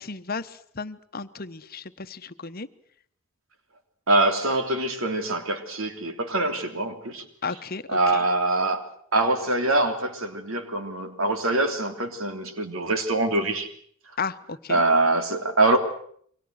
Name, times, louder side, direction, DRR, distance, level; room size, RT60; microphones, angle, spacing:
voice 1, 0.0-2.7 7.4-8.2 14.2-14.8, left 4 dB, 45° left, 11 dB, 1.1 m, -34 dB
voice 2, 4.1-7.2 7.9-13.7 14.7-15.8, right 2 dB, 75° right, 6 dB, 3.3 m, -24 dB
28.5 x 24.0 x 6.6 m, 0.62 s
head